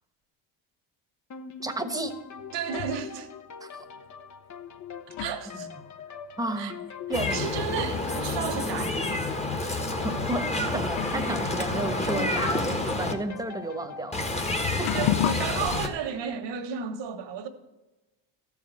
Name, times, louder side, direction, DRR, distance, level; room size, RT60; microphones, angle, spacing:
sound 1, 1.3-14.1, left 6 dB, 40° left, 1.0 m, -43 dB
voice 1, 1.6-2.2 3.6-3.8 6.4-6.8 7.1-7.5 9.5-14.4 14.8-15.1, right 2 dB, 10° right, 1.2 m, -32 dB
sound 2, 2.0-3.1 4.1-4.2 4.8-8.2 8.5-8.6 9.5-9.6 10.4-10.5 10.9-15.8, left 13 dB, 65° left, 0.5 m, -35 dB
voice 2, 2.5-3.3 5.1-5.7 6.6-6.7 7.1-9.3 11.8-11.9 14.8-17.5, right 7 dB, 65° right, 1.5 m, -33 dB
Meow, 7.1-13.1 14.1-15.9, left 2 dB, 15° left, 1.3 m, -29 dB
13.5 x 4.8 x 8.4 m
supercardioid pair, 90°, 46 cm